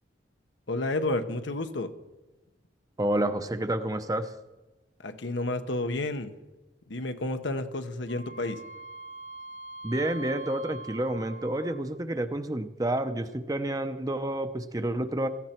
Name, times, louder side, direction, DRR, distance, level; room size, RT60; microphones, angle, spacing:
voice 1, 0.7-1.9 5.0-6.3 6.9-8.6, left 2 dB, 80° left, 8 dB, 1.0 m, -31 dB
voice 2, 3.0-4.3 9.8-15.3, right 1 dB, 20° right, 9 dB, 0.6 m, -29 dB
Wind instrument woodwind instrument, 8.1-12.0, right 3 dB, 45° left, 0.7 m, -43 dB
17.0 x 14.5 x 4.4 m, 1.1 s
head